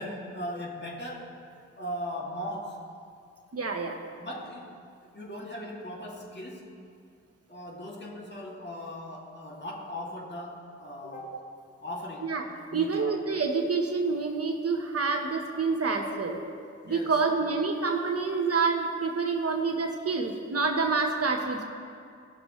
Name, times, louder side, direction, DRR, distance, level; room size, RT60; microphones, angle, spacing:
voice 1, 0.0-1.3 1.8-2.8 4.2-4.9 5.1-6.7 7.5-11.4 11.8-12.3 12.7-13.1 16.8-17.2, equal, 35° left, -3 dB, 2.5 m, -38 dB
voice 2, 3.5-4.0 12.2-12.4 12.7-16.4 16.8-21.6, right 4 dB, 50° right, 2 dB, 1.2 m, -27 dB
17.0 x 6.5 x 3.2 m, 2.3 s
cardioid pair, 45°, 31 cm